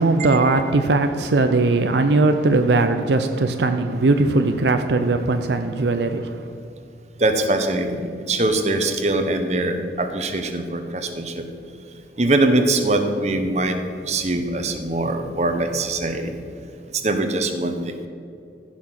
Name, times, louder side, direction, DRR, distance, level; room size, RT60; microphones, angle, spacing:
voice 1, 0.0-6.5, right 3 dB, 75° right, 0.6 m, -19 dB
voice 2, 7.2-11.4 12.2-13.8 14.0-16.3 16.9-18.1, right 2 dB, 40° right, 1.0 m, -22 dB
15.0 x 5.9 x 5.9 m
head